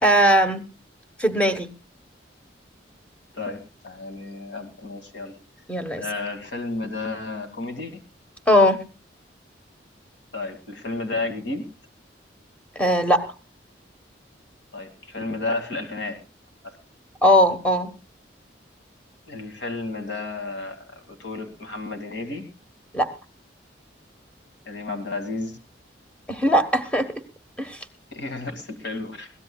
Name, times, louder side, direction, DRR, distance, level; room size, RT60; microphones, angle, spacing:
voice 1, 0.0-0.6 1.2-1.7 5.7-6.0 8.5-8.8 12.7-13.2 17.2-17.9 22.9-23.1 26.3-27.1 27.6-27.8, equal, 5° left, 7 dB, 1.2 m, -19 dB
voice 2, 3.3-5.3 6.0-8.0 10.3-11.7 14.7-16.2 16.6-16.8 19.3-22.5 24.7-25.6 28.1-29.3, left 3 dB, 80° left, 7 dB, 2.3 m, -32 dB
22.0 x 17.0 x 2.3 m, 0.31 s
head